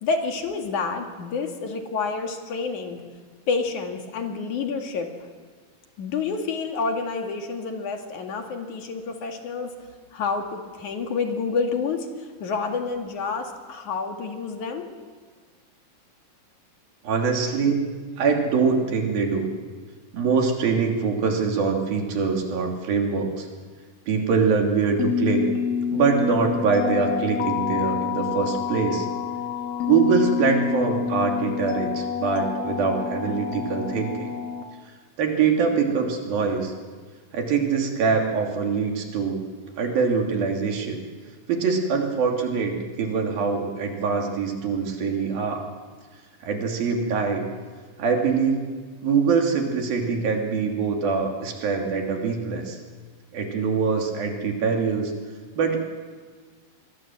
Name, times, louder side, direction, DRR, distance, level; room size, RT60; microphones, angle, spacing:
voice 1, 0.0-3.0 3.5-5.1 6.0-9.7 10.1-12.1 12.4-14.9, left 4 dB, 60° left, 4 dB, 3.4 m, -28 dB
voice 2, 17.0-17.9 18.2-19.5 20.1-23.5 24.1-25.5 25.9-29.1 29.8-34.3 35.2-36.7 37.3-39.4 39.8-41.0 41.5-45.7 46.4-47.4 48.0-48.7 49.0-52.8 53.3-55.1 55.6-55.8, right 5 dB, 85° right, 2 dB, 4.7 m, -23 dB
sound 1, 25.0-34.6, left 7 dB, 80° left, 3.3 m, -27 dB
26.5 x 21.5 x 7.8 m, 1.5 s
omnidirectional pair, 4.0 m